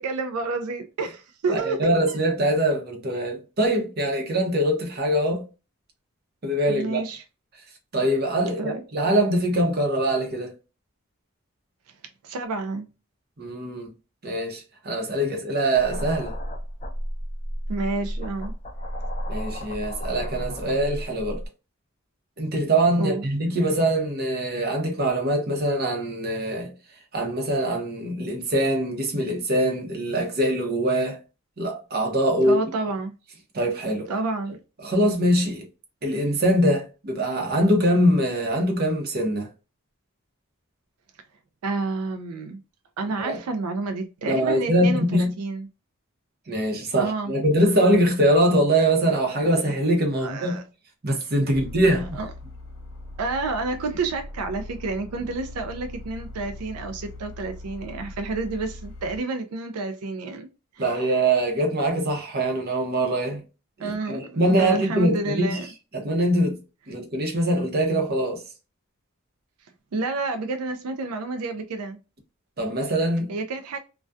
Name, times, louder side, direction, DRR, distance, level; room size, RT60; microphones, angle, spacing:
voice 1, 0.0-1.9 6.7-7.2 8.6-8.8 12.2-12.9 17.7-18.5 23.0-23.2 32.4-33.1 34.1-34.6 41.6-42.6 43.0-45.7 47.0-47.3 50.2-50.6 52.1-52.3 53.2-60.5 60.7-61.0 63.8-65.7 69.9-72.0 73.3-73.8, right 3 dB, 90° right, 0.4 m, -29 dB
voice 2, 1.5-5.5 6.4-7.0 7.9-10.5 13.4-13.9 14.2-16.3 19.3-21.4 22.4-26.7 27.1-31.2 31.6-32.6 33.5-34.1 34.8-35.6 36.0-39.5 43.2-43.4 44.3-45.3 46.5-50.6 51.0-52.2 60.8-63.4 63.8-65.6 65.9-66.6 66.9-68.4 72.6-73.3, right 1 dB, 45° right, 0.7 m, -23 dB
sound 1, 15.7-21.5, equal, 30° left, 0.4 m, -32 dB
sound 2, 51.5-59.2, left 1 dB, 70° left, 0.6 m, -40 dB
2.3 x 2.2 x 2.4 m
head